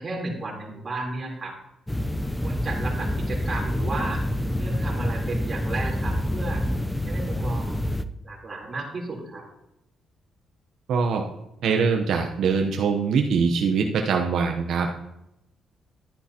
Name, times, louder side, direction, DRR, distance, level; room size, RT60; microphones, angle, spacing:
voice 1, 0.0-1.5 2.4-4.2 4.6-6.6 7.0-7.8 8.2-9.5, right 2 dB, 30° right, -4 dB, 3.4 m, -33 dB
sound 1, 1.9-8.0, left 1 dB, 10° left, 0.5 m, -27 dB
voice 2, 10.9-11.2 11.6-14.9, right 5 dB, 75° right, 2 dB, 0.8 m, -23 dB
11.0 x 10.0 x 2.9 m, 0.87 s
cardioid pair, 90°, 0 cm